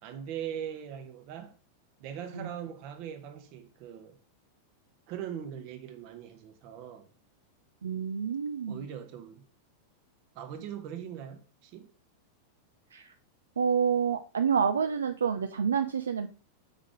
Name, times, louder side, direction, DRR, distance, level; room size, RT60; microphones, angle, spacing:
voice 1, 0.0-1.6 2.0-4.2 5.1-7.1 8.7-9.5 10.3-11.9, right 9 dB, 45° right, 1.1 m, -41 dB
voice 2, 7.8-8.8 12.9-13.1 13.6-16.3, right 7 dB, 70° right, 0.4 m, -28 dB
5.0 x 4.0 x 4.8 m
figure-of-eight pair, 90°, 0 cm